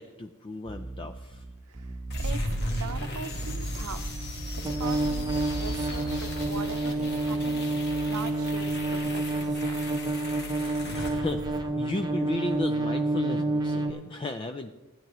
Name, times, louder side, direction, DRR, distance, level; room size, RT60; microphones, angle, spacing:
voice 1, 0.0-1.4 10.9-14.7, left 2 dB, 25° left, 7 dB, 0.4 m, -35 dB
sound 1, 0.7-13.9, right 2 dB, 20° right, 0.8 m, -30 dB
voice 2, 1.7-4.3 4.5-7.8 8.1-9.8, right 5 dB, 85° right, 10 dB, 0.7 m, -41 dB
sound 2, 2.1-12.1, equal, 50° left, 1.7 m, -35 dB
sound 3, 5.8-11.6, right 1 dB, 5° right, 1.3 m, -47 dB
16.0 x 10.5 x 3.1 m, 1.1 s
head